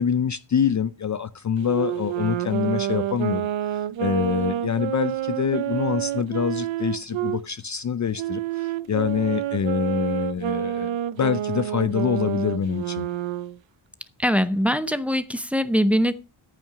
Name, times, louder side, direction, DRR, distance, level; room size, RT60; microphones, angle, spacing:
voice 1, 0.0-13.1, left 7 dB, 40° left, 0.5 m, -25 dB
Wind instrument woodwind instrument, 1.6-7.4 8.2-13.6, right 12 dB, 75° right, 0.7 m, -28 dB
voice 2, 14.2-16.1, equal, 5° right, 0.7 m, -22 dB
14.0 x 5.8 x 5.7 m
wide cardioid pair, 125°, 46 cm